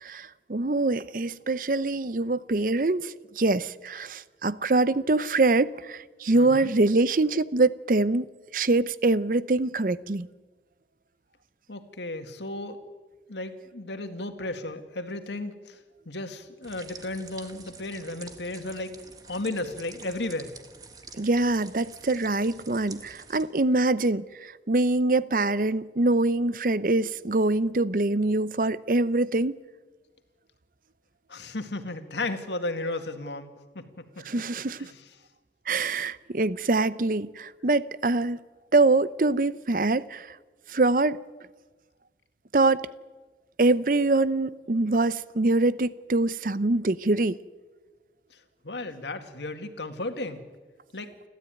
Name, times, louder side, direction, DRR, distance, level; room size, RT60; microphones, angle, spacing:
voice 1, 0.0-8.3 8.5-10.3 21.2-29.6 34.3-34.9 35.7-38.4 38.7-40.4 40.7-41.2 42.5-42.9 43.6-47.4, right 2 dB, 50° right, 0.6 m, -24 dB
voice 2, 6.3-6.7 11.7-12.8 13.3-15.8 16.1-19.0 19.3-20.5 31.3-33.9 34.2-34.3 34.8-35.1 48.3-50.4 50.9-51.1, left 2 dB, 85° left, 2.1 m, -34 dB
sound 1, 16.6-23.4, right 4 dB, 20° right, 1.5 m, -47 dB
29.5 x 12.5 x 9.2 m
head